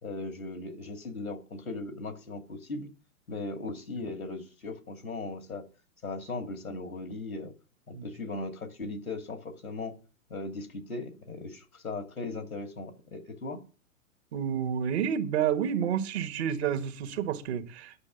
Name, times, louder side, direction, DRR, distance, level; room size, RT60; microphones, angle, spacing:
voice 1, 0.0-2.9 3.3-5.7 6.0-7.5 7.9-10.0 10.3-13.6, left 3 dB, 85° left, 2.3 m, -38 dB
voice 2, 14.3-17.9, right 8 dB, 50° right, 1.5 m, -29 dB
9.7 x 6.2 x 8.2 m
figure-of-eight pair, 110°, 42 cm